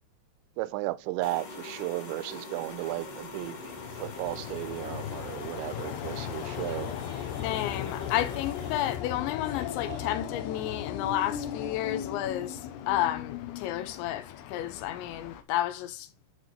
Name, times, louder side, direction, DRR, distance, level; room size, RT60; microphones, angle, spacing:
voice 1, 0.6-3.7 4.0-6.9, right 18 dB, 85° right, 3.0 m, -34 dB
sound 1, 1.2-9.0, left 3 dB, 45° left, 2.3 m, -44 dB
sound 2, 2.2-10.1, right 2 dB, 55° right, 0.5 m, -51 dB
sound 3, 2.8-15.4, left 10 dB, 75° left, 2.6 m, -38 dB
voice 2, 7.4-16.1, left 13 dB, 90° left, 3.3 m, -31 dB
9.8 x 4.7 x 4.3 m
omnidirectional pair, 5.1 m